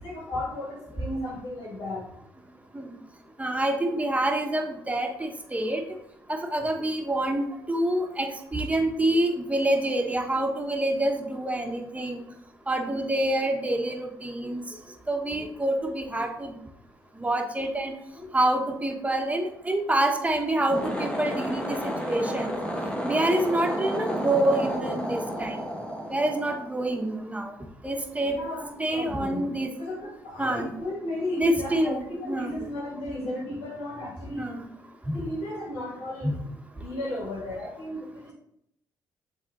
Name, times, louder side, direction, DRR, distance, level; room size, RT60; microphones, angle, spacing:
voice 1, 0.0-2.0 18.1-18.3 22.5-22.6 28.2-29.5 29.8-34.4 35.1-36.3 36.8-38.3, left 1 dB, 80° left, -4 dB, 2.2 m, -34 dB
voice 2, 3.4-5.8 6.3-12.2 12.7-14.6 15.1-16.6 17.1-17.9 18.3-22.5 23.0-25.6 26.1-27.5 27.8-28.4 28.8-29.7 30.4-30.7 31.4-32.5 34.4-34.7 35.0-35.2 36.2-36.3, right 1 dB, 15° right, 3 dB, 1.3 m, -27 dB
sound 1, 20.6-27.1, equal, 10° left, 1.4 m, -31 dB
7.3 x 3.6 x 3.9 m, 0.77 s
hypercardioid pair, 50°, 9 cm